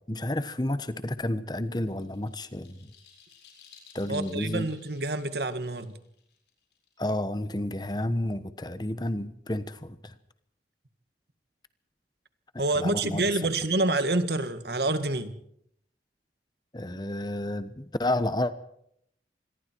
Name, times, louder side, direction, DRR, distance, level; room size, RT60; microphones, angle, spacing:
voice 1, 0.1-2.9 3.9-4.7 7.0-10.1 12.7-13.3 16.7-18.5, left 1 dB, 25° left, 1.1 m, -31 dB
sound 1, 1.5-7.3, left 6 dB, 75° left, 7.4 m, -56 dB
voice 2, 4.1-6.0 12.6-15.4, right 2 dB, 65° right, 1.9 m, -27 dB
26.5 x 21.5 x 4.6 m
head